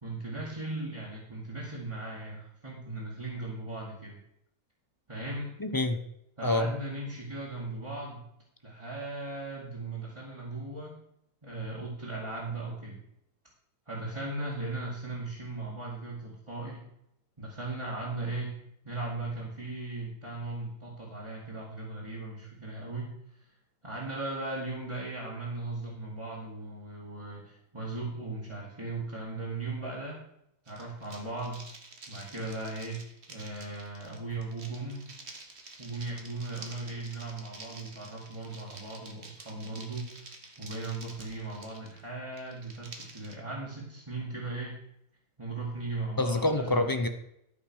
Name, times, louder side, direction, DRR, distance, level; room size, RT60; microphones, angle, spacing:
voice 1, 0.0-4.2 5.1-5.5 6.4-8.2 8.6-11.0 11.4-13.0 13.9-16.8 17.4-18.6 18.8-23.1 23.8-30.2 30.7-31.7 32.1-33.0 33.3-35.1 35.8-44.7 45.4-46.9, right 2 dB, 20° right, -7 dB, 2.6 m, -38 dB
voice 2, 5.6-6.0 6.4-6.7 46.2-47.1, left 2 dB, 30° left, 7 dB, 0.4 m, -26 dB
sound 1, 30.7-43.3, right 3 dB, 45° right, 1.7 m, -49 dB
13.0 x 5.8 x 6.5 m, 0.76 s
omnidirectional pair, 1.7 m